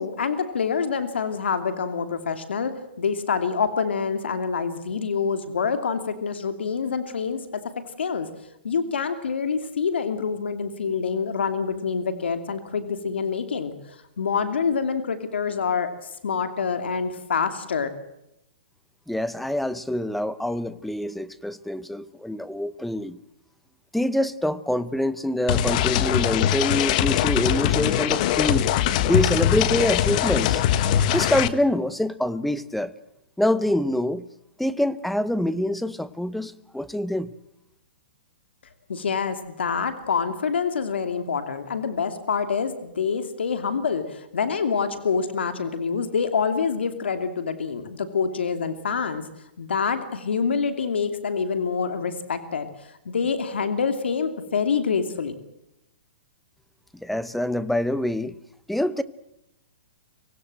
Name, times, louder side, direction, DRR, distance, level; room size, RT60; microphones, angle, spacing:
voice 1, 0.0-7.6 8.0-8.3 8.6-17.9 38.9-49.3 49.6-52.7 53.0-55.3, left 6 dB, 85° left, 9 dB, 2.7 m, -26 dB
voice 2, 19.1-23.2 23.9-28.7 29.1-30.6 31.1-32.9 33.4-34.2 34.6-37.3 57.0-58.4 58.7-59.0, left 1 dB, ahead, 16 dB, 0.8 m, -25 dB
sound 1, 25.5-31.5, left 11 dB, 45° left, 1.4 m, -22 dB
25.0 x 17.5 x 7.8 m, 0.84 s
hypercardioid pair, 145°, 6 cm